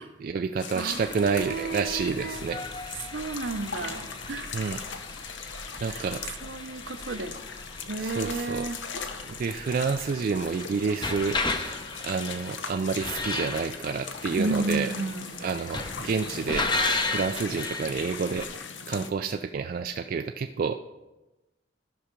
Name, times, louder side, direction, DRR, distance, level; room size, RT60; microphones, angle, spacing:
voice 1, 0.0-2.6 4.5-4.8 5.8-6.2 8.0-8.6 9.4-11.4 12.0-14.9 15.4-16.7 17.0-18.5 18.9-20.8, right 5 dB, 50° right, 7 dB, 0.3 m, -29 dB
sound 1, 0.6-19.1, left 5 dB, 75° left, 0.8 m, -40 dB
voice 2, 0.7-2.4 3.1-4.5 5.9-6.1 6.4-7.4 7.9-8.8 14.4-15.3, right 3 dB, 70° right, 10 dB, 0.7 m, -32 dB
sound 2, 0.9-18.4, left 3 dB, 25° left, 0.7 m, -35 dB
12.5 x 5.7 x 5.1 m, 1.1 s
head